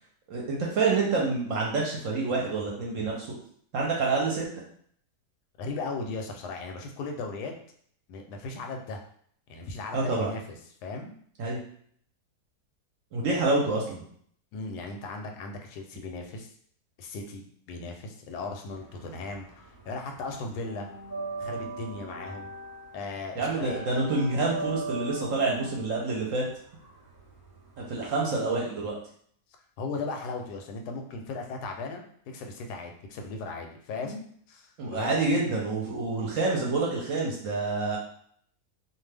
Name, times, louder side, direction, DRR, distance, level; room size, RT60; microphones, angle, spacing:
voice 1, 0.3-3.3 3.7-4.5 9.9-10.3 11.4-11.6 13.1-14.0 23.4-26.4 27.8-29.0 34.8-38.0, right 3 dB, 65° right, -2 dB, 0.9 m, -27 dB
voice 2, 5.6-7.5 8.1-9.0 9.5-10.6 10.8-11.1 14.5-16.5 17.0-20.9 21.4-22.5 22.9-23.9 29.8-35.2, left 3 dB, 85° left, 3 dB, 1.1 m, -37 dB
sound 1, 18.8-19.9 20.1-28.0, right 3 dB, 20° right, 0.6 m, -39 dB
2.6 x 2.2 x 3.3 m, 0.62 s
omnidirectional pair, 1.7 m